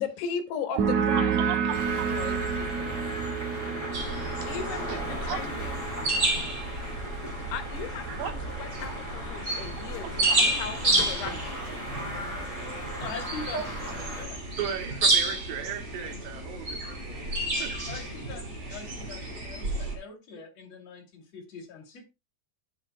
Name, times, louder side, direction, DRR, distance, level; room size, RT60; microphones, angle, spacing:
voice 1, 0.0-1.8 2.1-3.0 4.5-5.8 7.5-11.6, left 7 dB, 75° left, 3.2 m, -37 dB
sound 1, 0.8-8.0, right 7 dB, 60° right, 2.2 m, -30 dB
voice 2, 1.2-2.1 3.5-3.7 4.4-4.5 4.9-5.4 8.1-8.4 8.8-8.9 10.0-10.5 13.5-14.0 14.6-17.8, right 9 dB, 75° right, 3.3 m, -37 dB
sound 2, 1.7-14.2, equal, 15° right, 1.5 m, -38 dB
sound 3, 3.9-20.0, right 2 dB, 30° right, 2.6 m, -31 dB
voice 3, 13.0-14.4 17.9-22.0, left 4 dB, 40° left, 3.2 m, -42 dB
11.5 x 8.0 x 2.2 m
omnidirectional pair, 5.0 m